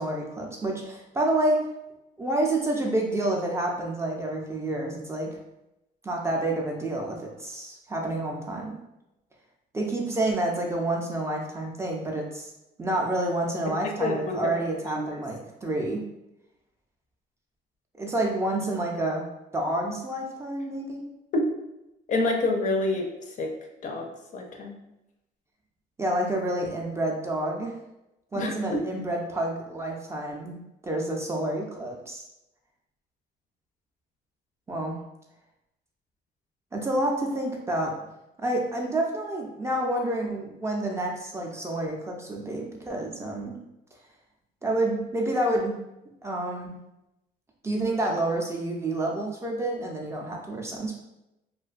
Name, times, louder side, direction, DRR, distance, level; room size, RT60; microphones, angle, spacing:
voice 1, 0.0-1.7 2.2-5.4 6.0-8.8 9.7-12.5 12.8-16.1 18.0-19.3 19.5-21.1 26.0-27.8 28.3-32.2 34.7-35.0 36.7-37.9 38.4-43.6 44.6-45.8 46.2-46.8 47.6-51.0, right 1 dB, 15° right, 0 dB, 0.4 m, -29 dB
voice 2, 14.0-15.2 21.3-21.5 22.1-23.5 23.8-24.8 28.3-28.8, left 2 dB, 50° left, 2 dB, 0.4 m, -28 dB
2.4 x 2.2 x 2.4 m, 0.90 s
cardioid pair, 110°, 17 cm